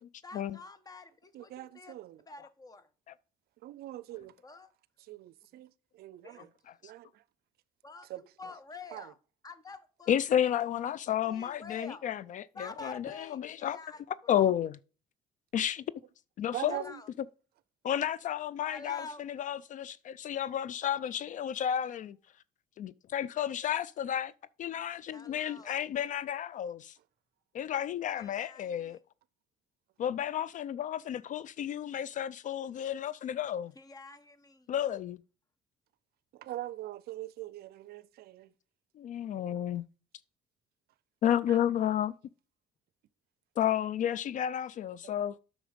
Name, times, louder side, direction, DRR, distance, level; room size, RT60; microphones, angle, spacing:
voice 1, 0.2-2.9 4.4-4.7 6.2-6.5 7.8-9.2 9.4-10.7 11.2-12.1 12.5-14.4 16.7-17.1 18.6-19.3 20.8-21.0 25.1-25.8 28.2-29.0 33.7-34.7, left 3 dB, 20° left, 1.1 m, -48 dB
voice 2, 1.3-2.2 3.6-4.3 5.1-6.5 6.8-7.2 8.1-8.2 8.9-9.0 16.5-17.0 36.3-38.5 41.5-41.6, right 15 dB, 70° right, 0.5 m, -42 dB
voice 3, 10.1-13.1 13.4-13.8 14.3-14.7 15.5-15.8 16.4-16.8 17.8-19.0 19.4-22.2 22.8-24.3 24.6-27.0 27.5-29.0 30.0-33.7 34.7-35.2 39.0-39.8 41.2-42.1 43.6-45.4, left 10 dB, 50° left, 0.4 m, -31 dB
8.8 x 6.1 x 5.1 m
cardioid pair, 110°, 17 cm